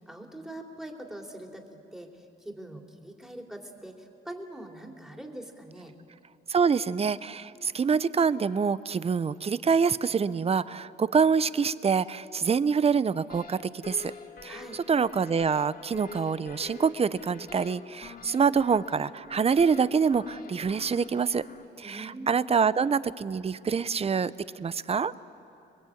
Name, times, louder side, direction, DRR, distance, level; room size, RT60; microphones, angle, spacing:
voice 1, 0.0-5.9 14.5-14.8 21.8-22.4, right 1 dB, ahead, 1 dB, 3.2 m, -43 dB
voice 2, 6.5-13.6 13.8-14.1 14.4-21.4 21.8-24.3 24.6-25.1, right 6 dB, 30° right, 17 dB, 0.7 m, -26 dB
sound 1, 13.3-21.7, left 5 dB, 45° left, 2.0 m, -46 dB
28.0 x 21.5 x 8.6 m, 2.8 s
cardioid pair, 90°, 20 cm